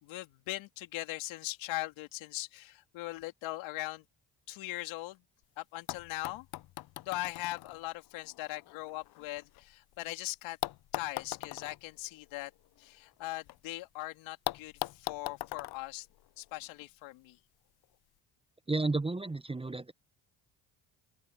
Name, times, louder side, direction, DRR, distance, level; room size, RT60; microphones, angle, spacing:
voice 1, 0.0-4.0 4.5-5.2 5.6-6.5 7.0-10.6 10.9-12.5 12.8-16.1 16.4-17.4, left 18 dB, 85° left, 3.2 m, -40 dB
sound 1, 5.4-5.5 5.9-10.0 10.6-13.6 13.8-13.9 14.4-16.8 17.8-17.9, left 16 dB, 55° left, 0.6 m, -42 dB
voice 2, 18.7-19.9, right 3 dB, 10° right, 0.7 m, -32 dB
open air
supercardioid pair, 65°, 45 cm